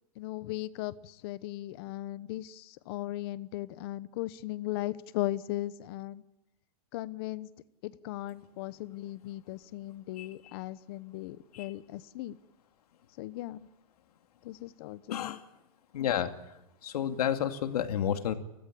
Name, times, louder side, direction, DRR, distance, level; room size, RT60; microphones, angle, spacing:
voice 1, 0.2-6.2 6.9-7.5 7.8-12.4 13.2-13.7 14.4-15.4, left 15 dB, 40° left, 16 dB, 1.0 m, -37 dB
voice 2, 15.1-15.4 15.9-16.3 16.8-18.3, left 10 dB, 80° left, 7 dB, 2.3 m, -30 dB
29.5 x 15.5 x 9.9 m, 0.93 s
supercardioid pair, 170°, 20 cm